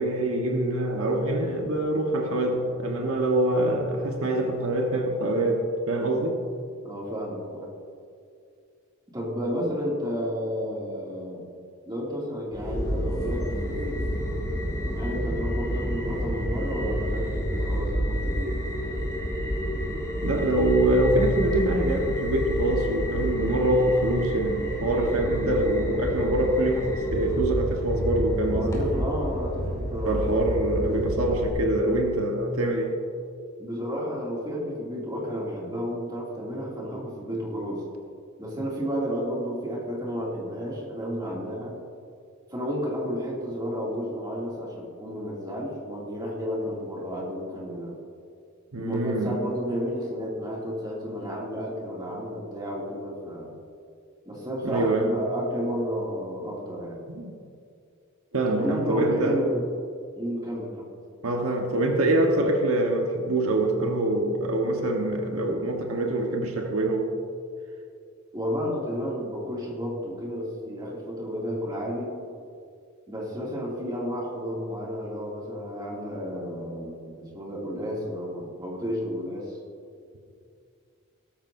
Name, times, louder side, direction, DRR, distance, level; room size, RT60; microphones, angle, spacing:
voice 1, 0.0-6.4 20.1-28.8 30.0-33.0 48.7-49.4 54.6-55.1 57.1-57.3 58.3-59.4 61.2-67.1, right 1 dB, 80° right, 2 dB, 1.3 m, -25 dB
voice 2, 6.8-7.7 9.1-11.4 11.8-14.0 15.0-18.6 25.2-25.7 28.4-30.3 33.6-37.9 38.4-41.8 42.5-48.0 48.7-53.6 54.2-57.0 58.4-59.6 60.2-60.9 68.3-72.1 73.1-79.6, equal, 20° right, -4 dB, 2.5 m, -32 dB
sound 1, 12.5-31.5, equal, 15° left, 2.5 m, -29 dB
17.0 x 13.5 x 2.7 m, 2.3 s
head